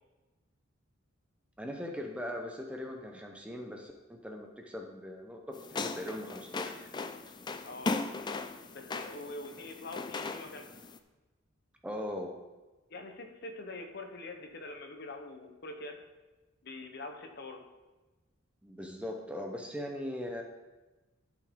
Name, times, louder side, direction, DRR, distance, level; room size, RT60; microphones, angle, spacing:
voice 1, 1.6-6.9 11.8-12.4 18.6-20.4, left 1 dB, 5° right, 2 dB, 0.7 m, -40 dB
sound 1, 5.5-11.0, left 3 dB, 20° left, 0.3 m, -38 dB
voice 2, 7.6-8.0 8.7-10.7 12.9-16.0 16.6-17.6, left 2 dB, 50° left, 5 dB, 0.9 m, -44 dB
12.0 x 5.9 x 3.7 m, 1.2 s
head